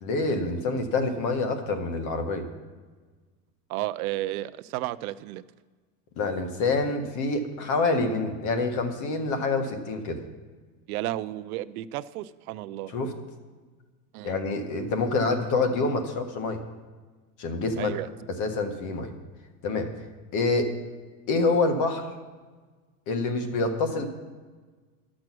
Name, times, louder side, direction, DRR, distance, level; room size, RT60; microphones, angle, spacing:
voice 1, 0.0-2.4 6.2-10.2 12.9-13.1 14.2-16.6 17.4-17.9 18.4-19.1 19.6-19.9 20.3-20.7 21.3-22.0 23.1-24.0, left 3 dB, 40° left, 6 dB, 1.5 m, -26 dB
voice 2, 3.7-5.4 10.9-12.9 14.1-14.4 17.8-18.1, right 15 dB, 65° right, 14 dB, 0.5 m, -32 dB
12.5 x 6.4 x 6.1 m, 1.4 s
supercardioid pair, 150°, 49 cm